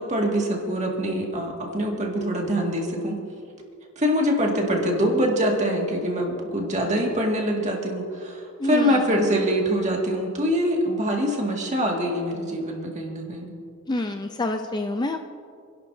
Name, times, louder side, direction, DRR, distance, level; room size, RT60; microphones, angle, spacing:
voice 1, 0.0-3.2 4.0-13.5, equal, 35° right, 0 dB, 1.9 m, -24 dB
voice 2, 8.6-9.0 13.9-15.2, left 2 dB, 20° left, 6 dB, 0.4 m, -27 dB
28.5 x 11.5 x 2.7 m, 2.4 s
head